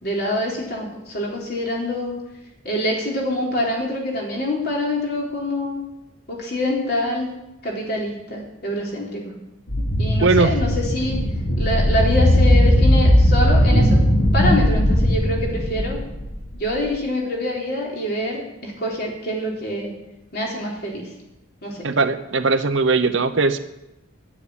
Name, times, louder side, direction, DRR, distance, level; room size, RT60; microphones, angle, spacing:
voice 1, 0.0-2.2 2.6-5.8 6.3-7.3 7.6-9.3 10.0-11.2 11.6-14.0 14.3-16.0 16.6-19.9 20.3-21.1 21.6-21.9, left 1 dB, 50° left, -2 dB, 3.8 m, -25 dB
sound 1, 9.7-16.8, equal, 70° left, 3.9 m, -17 dB
voice 2, 10.2-10.5 21.8-23.6, right 3 dB, 70° right, 10 dB, 0.8 m, -19 dB
9.8 x 8.5 x 9.9 m, 0.92 s
head